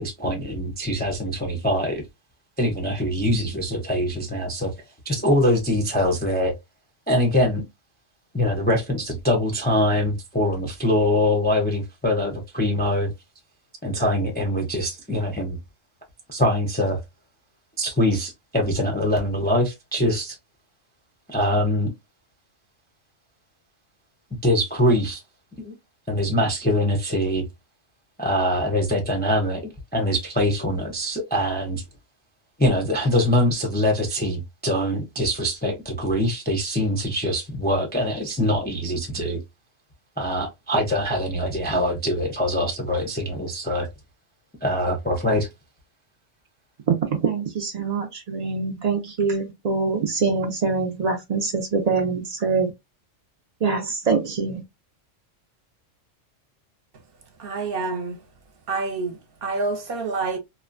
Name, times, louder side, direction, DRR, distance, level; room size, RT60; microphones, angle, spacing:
voice 1, 0.0-2.0 2.6-4.7 5.0-6.5 7.1-7.6 8.3-13.1 13.8-15.6 16.3-17.0 17.8-20.4 21.3-21.9 24.4-25.2 25.6-25.7 26.1-27.4 28.2-29.6 29.9-31.8 32.6-39.4 40.2-43.9 44.6-45.5, left 1 dB, 15° left, 0.3 m, -23 dB
voice 2, 46.9-52.7 53.6-54.6, right 4 dB, 85° right, 0.3 m, -24 dB
voice 3, 57.4-58.2 58.7-60.4, right 3 dB, 55° right, 0.8 m, -28 dB
2.9 x 2.1 x 2.4 m
omnidirectional pair, 1.3 m